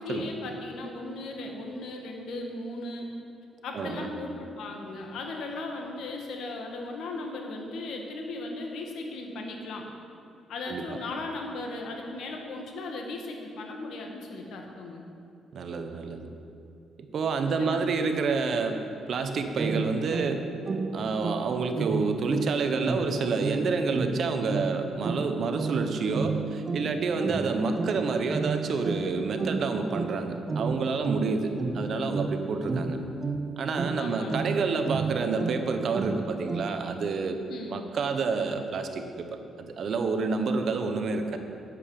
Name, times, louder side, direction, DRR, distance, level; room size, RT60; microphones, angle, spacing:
voice 1, 0.0-3.1 3.6-9.9 10.5-15.0 17.4-17.8 34.0-34.5 37.5-37.9, left 2 dB, 75° left, 1 dB, 1.8 m, -37 dB
voice 2, 3.7-4.1 10.7-11.0 15.5-16.3 17.1-18.8 19.1-20.4 20.9-33.0 33.6-37.4 37.7-41.4, right 4 dB, 60° right, 7 dB, 1.0 m, -29 dB
sound 1, 19.6-37.0, right 3 dB, 35° right, 0.7 m, -33 dB
8.3 x 7.8 x 8.8 m, 2.6 s
cardioid pair, 90°, 0 cm